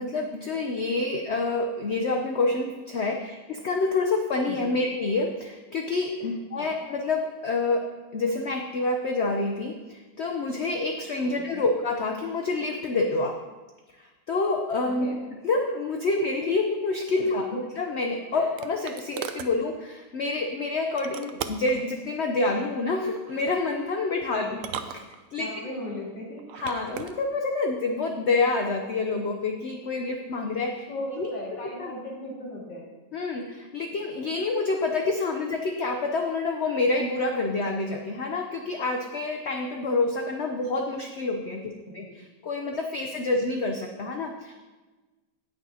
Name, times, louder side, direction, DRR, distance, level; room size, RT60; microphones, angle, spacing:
voice 1, 0.0-7.8 8.1-13.3 14.0-15.1 15.4-24.6 25.3-25.5 26.6-30.9 31.2-31.3 31.8-31.9 33.1-42.0 42.4-44.5, left 3 dB, 60° left, 3 dB, 0.7 m, -27 dB
voice 2, 11.2-11.7 14.8-15.2 17.5-17.6 18.3-18.5 24.3-24.6 25.0-25.1 25.4-26.4 30.9-32.8 41.8-42.1 43.3-43.5, left 1 dB, 90° left, -4 dB, 2.8 m, -38 dB
sound 1, 17.8-19.5 21.0-21.8 23.2-23.6 24.5-25.6 26.4-27.1, right 8 dB, 70° right, 0.8 m, -38 dB
18.0 x 6.2 x 2.8 m, 1.2 s
omnidirectional pair, 1.9 m